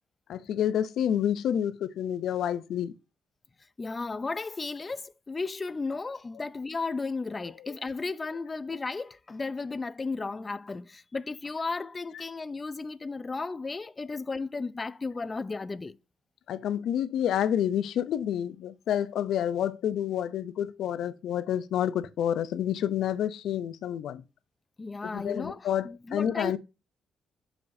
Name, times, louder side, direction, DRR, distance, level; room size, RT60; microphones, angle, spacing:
voice 1, 0.3-2.9 7.6-7.7 12.1-12.2 16.5-24.2 25.0-26.6, left 10 dB, 80° left, 0.5 m, -29 dB
voice 2, 3.8-16.0 24.8-26.6, left 3 dB, 30° left, 0.4 m, -34 dB
7.0 x 5.2 x 2.7 m
cardioid pair, 90°, 0 cm